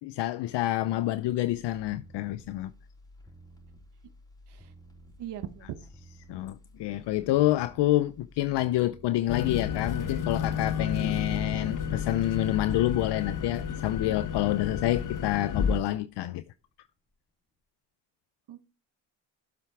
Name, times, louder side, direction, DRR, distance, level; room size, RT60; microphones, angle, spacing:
voice 1, 0.0-2.7 6.3-16.4, left 15 dB, 70° left, 0.6 m, -28 dB
sound 1, 1.1-16.7 17.1-17.2, equal, 10° left, 4.2 m, -53 dB
voice 2, 5.2-5.9 18.5-18.6, right 11 dB, 70° right, 1.0 m, -40 dB
sound 2, 9.3-15.8, left 7 dB, 45° left, 1.2 m, -31 dB
12.0 x 7.4 x 4.7 m
supercardioid pair, 60°, 43 cm